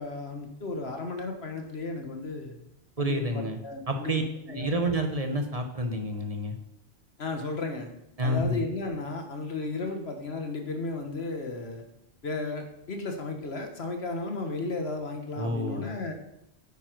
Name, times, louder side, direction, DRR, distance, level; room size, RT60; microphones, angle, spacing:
voice 1, 0.0-2.6 3.0-4.8 7.2-7.9 8.2-11.8 12.2-16.1, left 3 dB, 75° left, 4 dB, 1.7 m, -34 dB
voice 2, 3.0-3.6 3.9-4.2 4.5-6.6 8.2-8.6 15.4-15.9, right 1 dB, 35° right, 5 dB, 1.1 m, -29 dB
9.1 x 8.7 x 4.6 m, 0.81 s
omnidirectional pair, 1.1 m